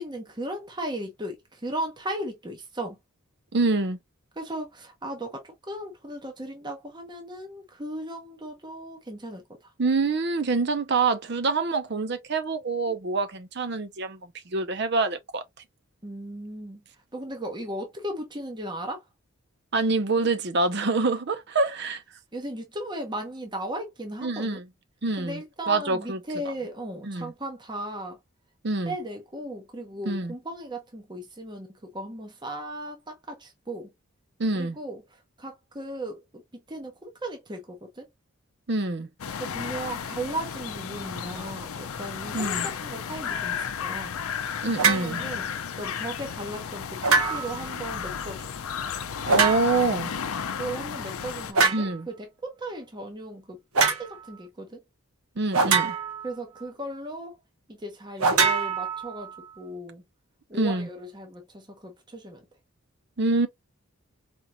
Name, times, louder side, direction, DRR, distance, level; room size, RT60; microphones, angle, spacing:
voice 1, 0.0-3.0 4.4-9.7 16.0-16.8 17.1-19.0 22.3-24.6 25.2-28.2 28.9-33.9 34.5-36.2 36.7-38.1 39.4-44.2 44.8-45.5 45.8-48.5 50.6-54.8 56.2-57.4 57.7-60.0 60.5-62.4, right 1 dB, 20° right, 0.8 m, -36 dB
voice 2, 3.5-4.0 9.8-14.2 14.5-15.4 19.7-22.0 24.2-24.6 25.0-25.4 25.7-26.2 27.0-27.3 28.6-28.9 30.1-30.3 34.4-34.8 38.7-39.1 42.3-42.7 44.6-45.2 49.3-50.1 51.7-52.1 55.4-55.9 60.5-60.9 63.2-63.5, right 3 dB, 50° right, 0.6 m, -26 dB
sound 1, 39.2-51.5, left 7 dB, 80° left, 0.5 m, -33 dB
sound 2, 44.8-45.1 47.0-47.6 49.3-49.9 51.5-51.9 53.7-54.0 55.5-56.3 58.2-59.3, right 4 dB, 85° right, 1.2 m, -23 dB
4.4 x 2.9 x 2.3 m
head